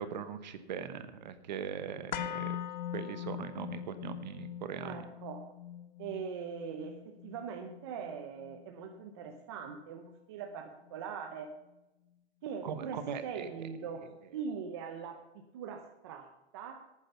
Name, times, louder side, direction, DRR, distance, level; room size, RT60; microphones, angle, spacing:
voice 1, 0.0-2.6 2.9-5.0 12.6-13.7, right 7 dB, 40° right, 11 dB, 1.1 m, -40 dB
sound 1, 2.1-10.2 10.5-10.6, left 11 dB, 45° left, 0.6 m, -42 dB
voice 2, 4.8-5.4 6.0-11.5 12.4-15.2 15.5-16.3 16.5-16.8, right 6 dB, 25° right, 4 dB, 0.7 m, -41 dB
12.0 x 9.1 x 5.6 m, 0.95 s
hypercardioid pair, 175°, 33 cm